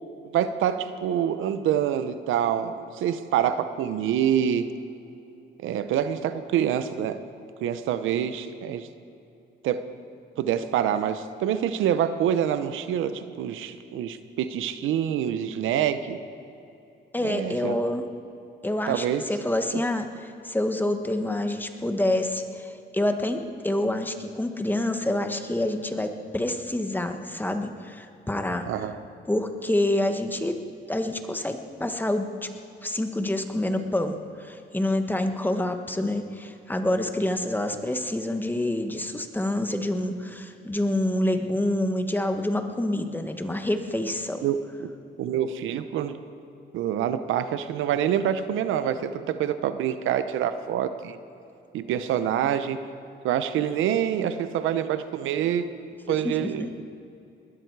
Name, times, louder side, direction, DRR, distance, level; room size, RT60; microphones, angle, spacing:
voice 1, 0.3-4.7 5.6-7.2 7.6-8.9 9.6-9.8 10.4-16.2 17.2-17.8 18.9-19.2 19.7-19.8 28.7-29.0 44.4-44.9 45.2-46.2 46.7-51.2 51.7-52.8 53.2-56.8, right 9 dB, 85° right, 11 dB, 0.8 m, -26 dB
voice 2, 17.1-18.0 18.6-28.6 29.3-30.6 30.9-32.5 32.8-44.4 56.1-56.7, left 1 dB, 10° left, 6 dB, 1.3 m, -27 dB
20.5 x 13.0 x 4.7 m, 2.8 s
cardioid pair, 90°, 20 cm